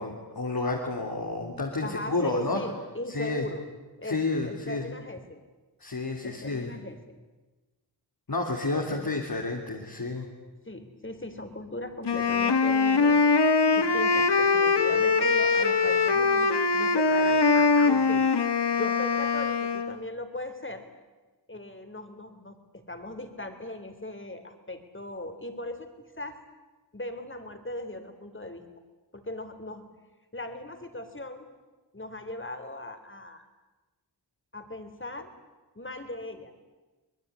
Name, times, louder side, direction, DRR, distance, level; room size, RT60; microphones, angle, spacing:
voice 1, 0.0-2.6 3.1-3.5 4.0-4.9 5.8-6.8 8.3-10.3, left 3 dB, 55° left, 0 dB, 3.5 m, -30 dB
voice 2, 1.8-3.6 4.0-5.4 6.2-7.0 8.7-9.1 10.7-13.4 13.7-18.2 18.7-20.8 21.5-22.6 22.9-26.4 26.9-28.6 29.1-29.9 30.3-31.5 31.9-33.5 34.5-35.3 35.8-36.5, left 1 dB, 30° left, 8 dB, 3.7 m, -38 dB
Wind instrument woodwind instrument, 12.0-20.0, left 4 dB, 75° left, 1.5 m, -22 dB
25.0 x 20.5 x 9.6 m, 1.2 s
wide cardioid pair, 55°, 41 cm